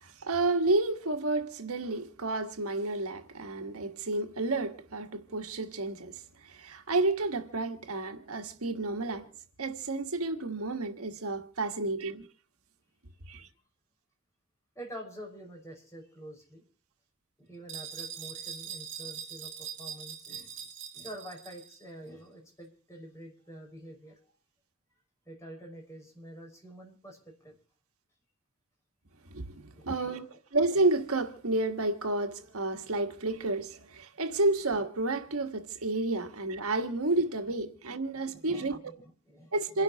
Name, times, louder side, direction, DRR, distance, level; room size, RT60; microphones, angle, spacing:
voice 1, 0.0-9.3 9.6-12.3 13.3-13.5 29.3-38.8 39.5-39.8, right 2 dB, 80° right, 1.5 m, -31 dB
voice 2, 14.8-16.7 17.4-20.5 20.9-24.2 25.3-27.6 29.7-30.2 38.1-39.8, right 1 dB, 15° left, 5.5 m, -47 dB
sound 1, 17.7-21.8, right 8 dB, 60° right, 2.4 m, -42 dB
28.0 x 11.5 x 2.9 m
head